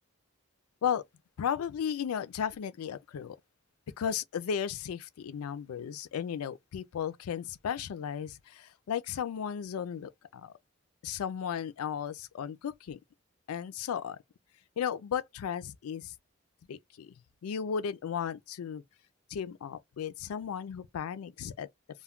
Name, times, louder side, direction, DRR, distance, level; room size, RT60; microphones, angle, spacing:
voice 1, 1.4-3.4 4.0-10.5 11.0-13.0 13.5-14.2 14.8-16.1 16.7-17.1 17.4-18.8 19.3-21.7, left 8 dB, 85° left, 0.3 m, -35 dB
2.2 x 2.2 x 3.5 m
head